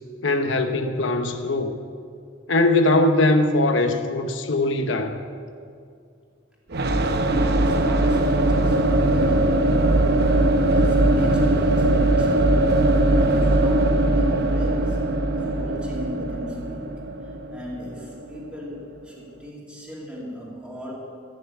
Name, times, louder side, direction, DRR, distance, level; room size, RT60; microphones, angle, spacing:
voice 1, 0.2-1.7 2.5-5.2, left 2 dB, 65° left, 7 dB, 0.9 m, -21 dB
sound 1, 6.7-18.5, right 1 dB, 55° right, 0.8 m, -20 dB
voice 2, 6.8-20.9, equal, 5° right, -6 dB, 2.7 m, -38 dB
15.5 x 6.9 x 8.3 m, 2.3 s
head